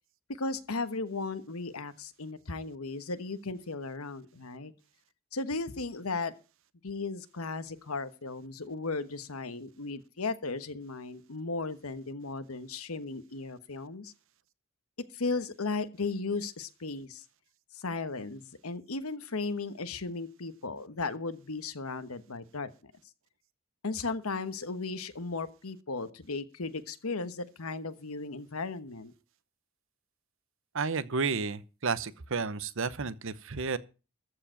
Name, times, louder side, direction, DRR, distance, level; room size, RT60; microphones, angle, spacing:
voice 1, 0.4-4.7 5.3-6.3 6.8-14.1 15.1-17.2 17.7-22.9 23.8-29.1, left 3 dB, 85° left, 1.2 m, -36 dB
voice 2, 30.7-33.8, right 4 dB, 65° right, 0.9 m, -32 dB
14.0 x 4.9 x 9.0 m
head